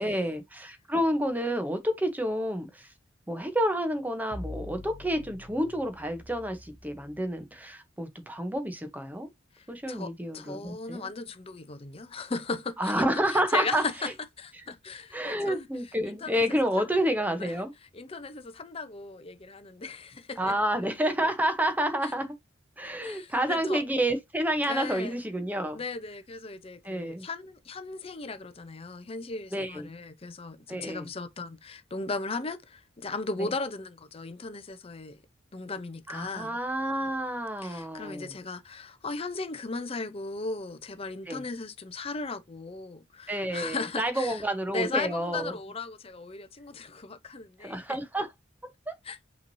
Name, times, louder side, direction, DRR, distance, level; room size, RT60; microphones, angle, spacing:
voice 1, 0.0-2.9 3.3-9.3 9.7-11.1 12.8-13.8 15.1-17.7 20.4-22.3 22.8-25.8 26.8-27.2 29.5-29.9 30.7-31.1 33.4-33.5 36.1-38.3 41.3-41.4 43.3-45.5 47.6-48.3 48.9-49.0, right 1 dB, 10° right, 0.8 m, -29 dB
sound 1, 4.3-7.4, left 1 dB, 45° left, 1.0 m, -44 dB
voice 2, 9.5-14.1 14.4-15.7 16.0-16.4 16.8-17.0 17.4-17.5 17.9-20.5 22.0-22.1 23.0-23.8 24.7-25.2 25.7-35.2 35.5-36.5 37.6-44.4 44.7-48.0 49.0-49.2, left 3 dB, 30° left, 0.6 m, -37 dB
5.7 x 3.0 x 2.6 m
head